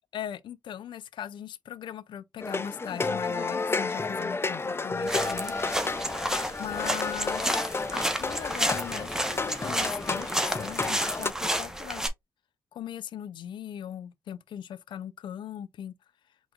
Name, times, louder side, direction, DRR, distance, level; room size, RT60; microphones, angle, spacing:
voice 1, 0.1-5.7 6.6-7.4 7.9-12.0 12.7-15.9, left 10 dB, 75° left, 0.5 m, -39 dB
sound 1, 2.4-11.3, left 3 dB, 30° left, 0.5 m, -31 dB
sound 2, 5.1-12.1, right 1 dB, 5° right, 1.2 m, -31 dB
4.9 x 3.8 x 2.5 m
supercardioid pair, 50°, 8 cm